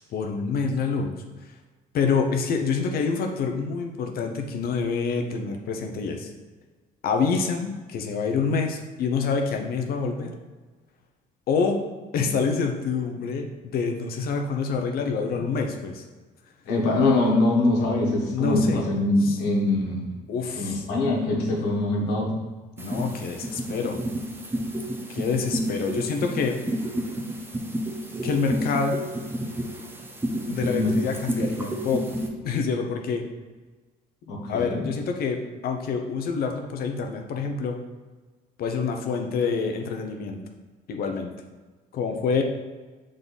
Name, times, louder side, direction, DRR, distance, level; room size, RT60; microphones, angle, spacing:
voice 1, 0.1-1.2 1.9-6.3 7.0-10.3 11.5-11.8 12.1-16.0 18.3-18.9 19.2-19.4 20.3-20.8 22.8-24.0 25.1-26.6 28.2-29.0 30.5-32.0 32.4-33.2 34.5-35.4 35.6-37.8 38.6-40.4 40.9-41.3 41.9-42.4, left 5 dB, 65° left, 3 dB, 0.8 m, -26 dB
voice 2, 16.6-20.1 20.5-22.4 30.7-30.9 34.3-34.8, left 2 dB, 90° left, -1 dB, 1.4 m, -23 dB
sound 1, 22.8-32.3, right 1 dB, 15° right, 0.8 m, -31 dB
6.5 x 3.8 x 4.0 m, 1.3 s
cardioid pair, 110°, 17 cm